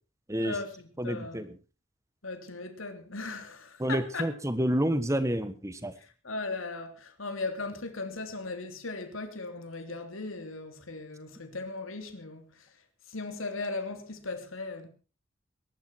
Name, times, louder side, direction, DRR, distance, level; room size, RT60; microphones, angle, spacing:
voice 1, 0.4-1.5 2.2-4.3 6.2-12.6 13.1-14.9, left 3 dB, 85° left, 3.3 m, -37 dB
voice 2, 1.0-1.5 3.8-5.9, right 1 dB, 15° right, 1.4 m, -29 dB
22.0 x 12.0 x 4.7 m
head